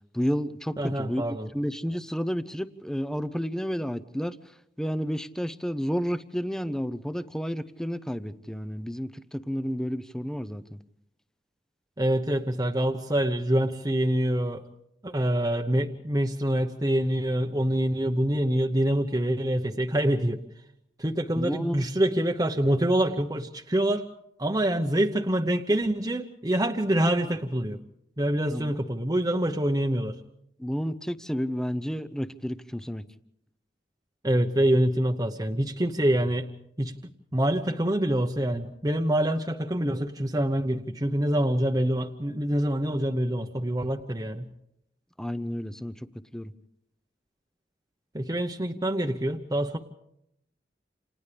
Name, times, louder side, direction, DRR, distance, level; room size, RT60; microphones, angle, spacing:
voice 1, 0.1-4.4 4.8-10.8 21.4-21.8 28.5-28.7 30.6-33.0 45.2-46.1 46.3-46.5, equal, 5° left, 14 dB, 0.8 m, -31 dB
voice 2, 0.8-1.5 12.0-14.6 15.0-20.4 21.0-24.1 24.4-27.8 28.2-30.2 34.2-36.5 36.8-36.9 37.3-44.5 48.1-49.8, right 1 dB, 20° right, 2 dB, 1.0 m, -26 dB
29.0 x 28.0 x 3.4 m, 0.77 s
head